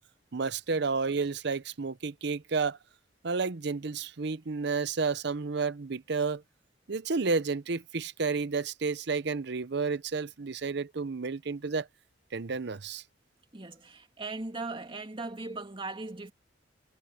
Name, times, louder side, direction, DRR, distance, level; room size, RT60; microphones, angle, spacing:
voice 1, 0.3-2.8 3.2-6.4 6.9-11.9 12.3-13.0, right 4 dB, 60° right, 0.7 m, -31 dB
voice 2, 13.5-16.3, right 3 dB, 25° right, 2.3 m, -38 dB
head